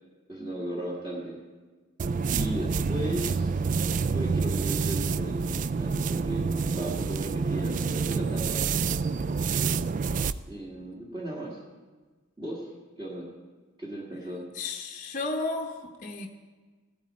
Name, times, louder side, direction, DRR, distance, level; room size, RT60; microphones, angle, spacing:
voice 1, 0.3-1.3 2.3-3.5 4.1-6.4 6.7-8.6 9.1-9.3 10.5-11.6 12.4-12.7 13.0-13.3 13.8-14.5, right 1 dB, 25° right, -5 dB, 1.9 m, -36 dB
sound 1, 2.0-10.4, right 5 dB, 40° right, 0.3 m, -28 dB
voice 2, 14.5-16.3, left 3 dB, 40° left, 2 dB, 0.8 m, -33 dB
16.5 x 12.5 x 4.3 m, 1.4 s
head